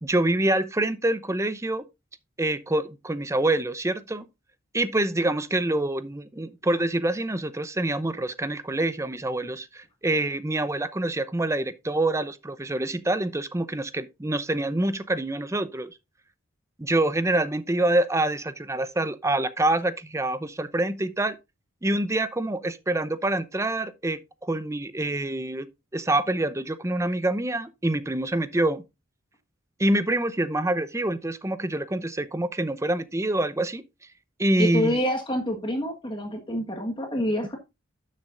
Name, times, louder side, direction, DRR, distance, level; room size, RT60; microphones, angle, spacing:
voice 1, 0.0-1.8 2.4-4.2 4.7-15.9 16.8-21.4 21.8-25.7 25.9-28.8 29.8-33.8 34.4-35.0, right 1 dB, 15° right, 0.6 m, -26 dB
voice 2, 34.6-37.6, left 1 dB, 25° left, 1.5 m, -27 dB
12.0 x 7.4 x 2.5 m
head